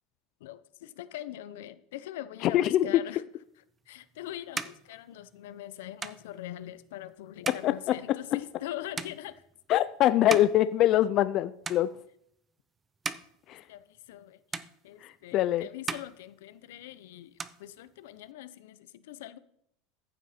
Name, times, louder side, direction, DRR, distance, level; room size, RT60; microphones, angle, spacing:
voice 1, 0.4-3.2 3.9-9.4 13.7-14.4 14.8-19.4, left 13 dB, 80° left, 14 dB, 0.8 m, -42 dB
voice 2, 2.4-3.0 7.4-7.7 9.7-11.9 13.5-13.6 15.0-15.7, left 13 dB, 40° left, 13 dB, 0.4 m, -24 dB
sound 1, 3.7-11.4 11.6-12.3 12.8-14.2 14.5-15.4 15.7-16.9 17.2-18.3, right 4 dB, 15° right, 0.5 m, -41 dB
14.5 x 8.0 x 4.4 m, 0.71 s
supercardioid pair, 160°, 0 cm